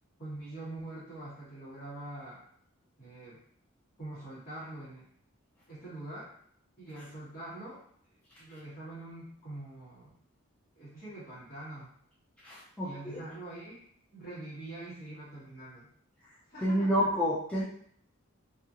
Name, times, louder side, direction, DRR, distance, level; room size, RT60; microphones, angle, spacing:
voice 1, 0.2-2.4 3.0-3.4 4.0-5.1 5.7-6.3 6.8-7.8 8.4-10.1 10.7-11.9 12.8-13.8 14.1-15.9 16.5-16.9, right 2 dB, 40° left, -14 dB, 1.5 m, -44 dB
voice 2, 12.4-12.9 16.6-17.6, equal, 5° left, -8 dB, 0.4 m, -28 dB
2.8 x 2.7 x 2.5 m, 0.64 s
head